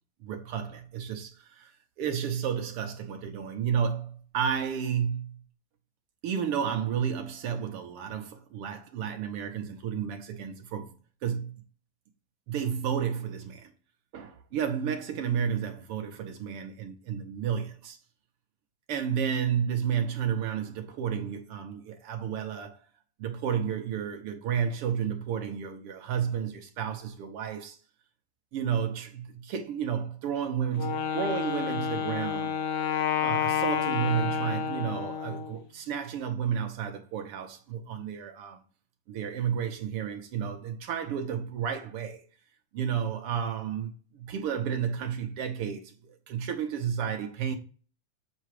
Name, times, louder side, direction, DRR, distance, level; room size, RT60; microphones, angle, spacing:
voice 1, 0.2-1.7 2.0-5.4 6.2-10.9 11.2-11.6 12.5-13.7 14.1-18.0 18.9-22.8 23.2-27.8 28.5-32.5 33.2-38.6 39.1-42.2 42.7-47.6, right 8 dB, 65° right, 1.6 m, -32 dB
Wind instrument woodwind instrument, 30.7-35.6, left 8 dB, 70° left, 1.7 m, -30 dB
8.5 x 4.5 x 4.8 m
omnidirectional pair, 3.4 m